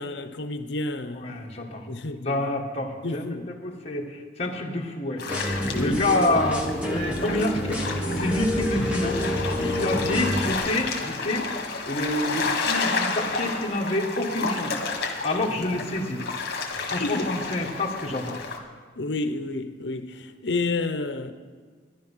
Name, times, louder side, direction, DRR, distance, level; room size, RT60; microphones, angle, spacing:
voice 1, 0.0-1.4 1.9-2.5 3.0-3.5 5.7-6.1 8.8-8.9 9.6-10.5 17.0-17.3 19.0-21.3, left 2 dB, 75° left, 0.8 m, -31 dB
voice 2, 1.1-1.8 2.2-3.2 3.6-5.2 5.8-9.2 9.6-11.5 11.9-14.8 15.2-16.2 16.8-18.4, left 1 dB, 35° left, 1.6 m, -28 dB
sound 1, 5.2-18.6, left 4 dB, 55° left, 1.7 m, -31 dB
sound 2, 5.3-10.6, left 1 dB, 5° right, 1.5 m, -28 dB
13.5 x 11.0 x 5.6 m
head